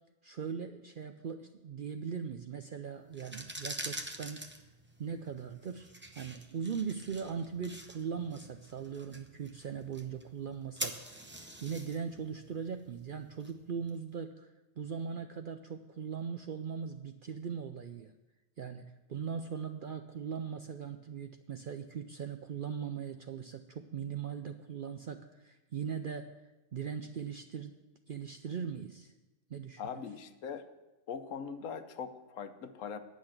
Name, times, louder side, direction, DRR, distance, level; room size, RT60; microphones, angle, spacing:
voice 1, 0.2-4.4 5.0-14.5 14.8-18.1 18.6-26.3 26.7-27.8 28.1-29.1 29.5-29.8, right 6 dB, 60° right, 7 dB, 0.5 m, -40 dB
sound 1, 3.1-13.9, right 1 dB, 10° right, 0.6 m, -46 dB
voice 2, 29.8-30.7 31.1-33.0, left 6 dB, 75° left, 10 dB, 1.1 m, -41 dB
9.9 x 6.3 x 8.7 m, 1.1 s
omnidirectional pair, 1.4 m